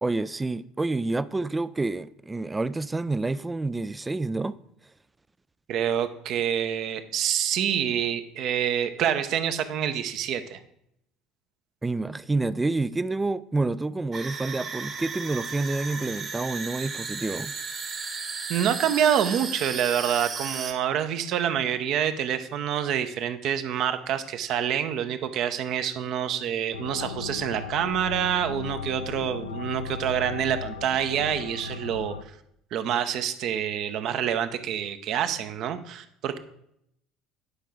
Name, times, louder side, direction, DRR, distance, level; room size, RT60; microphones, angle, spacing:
voice 1, 0.0-4.6 11.8-17.5, right 3 dB, 15° right, 0.4 m, -28 dB
voice 2, 5.7-10.6 18.5-32.1 32.7-36.4, right 9 dB, 50° right, 0.7 m, -27 dB
sound 1, 14.1-20.7, right 4 dB, 35° right, 1.2 m, -35 dB
sound 2, 26.7-32.2, left 6 dB, 75° left, 0.5 m, -36 dB
10.0 x 5.5 x 5.0 m
figure-of-eight pair, 60°, 0 cm